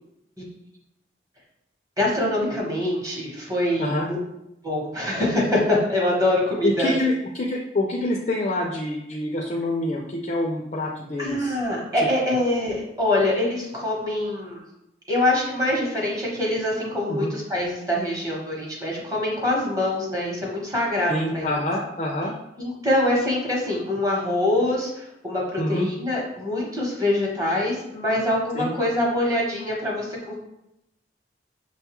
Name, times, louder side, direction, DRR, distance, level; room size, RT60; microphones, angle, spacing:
voice 1, 2.0-4.2 4.6-6.9 11.2-14.6 15.1-21.6 22.6-30.4, left 1 dB, 20° right, -3 dB, 0.9 m, -24 dB
voice 2, 6.6-11.6 12.0-12.1 17.1-17.3 21.1-22.3 25.6-25.9 28.5-28.7, left 1 dB, 35° left, 0 dB, 0.4 m, -26 dB
6.1 x 2.3 x 2.9 m, 0.85 s
head